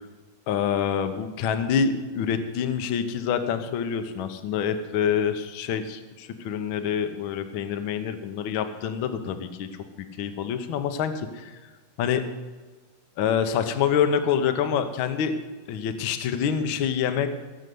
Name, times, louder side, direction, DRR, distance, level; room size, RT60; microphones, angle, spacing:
voice 1, 0.5-9.7 10.0-11.6 12.0-12.2 13.2-15.4 15.7-17.3, left 7 dB, 90° left, 8 dB, 1.1 m, -26 dB
18.0 x 6.7 x 7.7 m, 1.3 s
omnidirectional pair, 3.6 m